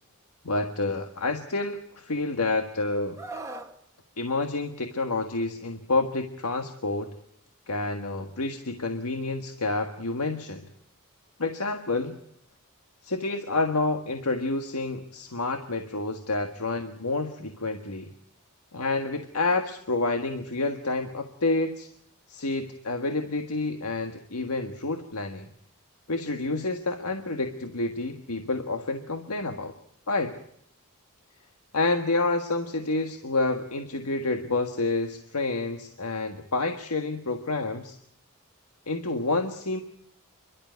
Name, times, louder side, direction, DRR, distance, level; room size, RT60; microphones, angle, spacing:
voice 1, 0.4-3.2 4.2-7.1 7.7-10.6 11.4-12.1 13.0-18.1 18.7-21.9 22.3-25.5 26.1-29.7 30.1-30.4 31.7-38.0 38.9-39.8, left 2 dB, 85° left, 5 dB, 1.6 m, -29 dB
Screaming, 3.2-3.7 5.2-5.4, right 2 dB, 15° right, 1.9 m, -39 dB
29.0 x 12.0 x 9.4 m, 0.73 s
head